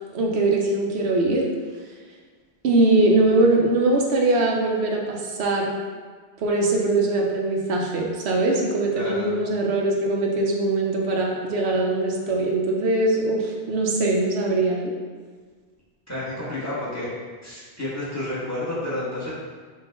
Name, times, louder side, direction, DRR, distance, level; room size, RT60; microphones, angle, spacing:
voice 1, 0.1-1.5 2.6-5.7 6.4-14.9, right 2 dB, 85° right, -1 dB, 1.0 m, -21 dB
voice 2, 8.9-9.3 16.1-17.1 17.4-19.3, left 1 dB, 15° left, -9 dB, 1.5 m, -30 dB
5.5 x 2.5 x 3.6 m, 1.5 s
omnidirectional pair, 1.1 m